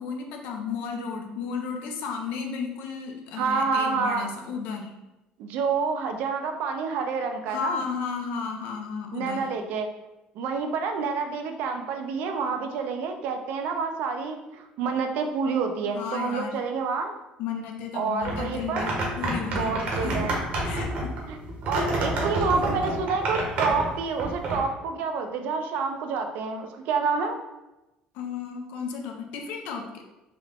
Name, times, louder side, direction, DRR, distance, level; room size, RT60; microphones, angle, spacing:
voice 1, 0.0-4.9 7.5-9.5 15.9-16.6 17.4-20.4 20.6-21.2 22.5-22.8 28.1-30.0, left 6 dB, 75° left, 3 dB, 0.6 m, -33 dB
voice 2, 3.4-4.3 5.4-7.8 9.1-9.9 10.4-17.1 17.9-18.9 19.5-20.4 21.3-21.4 21.7-27.4, right 5 dB, 75° right, 5 dB, 0.5 m, -28 dB
sound 1, 18.2-24.6, right 1 dB, 50° right, 0.9 m, -29 dB
3.7 x 2.2 x 3.6 m, 0.98 s
cardioid pair, 130°, 3 cm